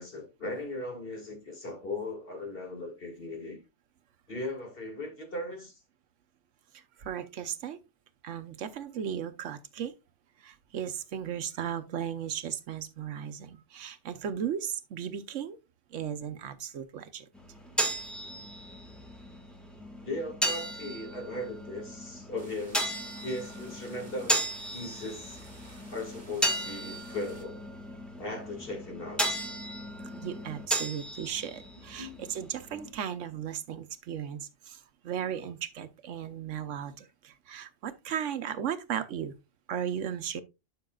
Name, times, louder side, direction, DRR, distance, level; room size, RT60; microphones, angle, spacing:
voice 1, 0.0-3.6 4.3-5.8 20.0-22.9 23.2-24.4 24.7-25.4 25.9-27.6 28.2-29.2 32.0-32.2, left 2 dB, 50° left, 2.3 m, -38 dB
voice 2, 6.7-7.8 8.2-9.9 10.4-15.6 15.9-17.3 30.2-39.3 39.7-40.4, right 9 dB, 80° right, 1.2 m, -36 dB
sound 1, 17.3-32.9, right 1 dB, ahead, 1.7 m, -35 dB
sound 2, 22.4-27.4, right 2 dB, 40° right, 2.1 m, -54 dB
11.5 x 5.8 x 2.3 m
omnidirectional pair, 1.2 m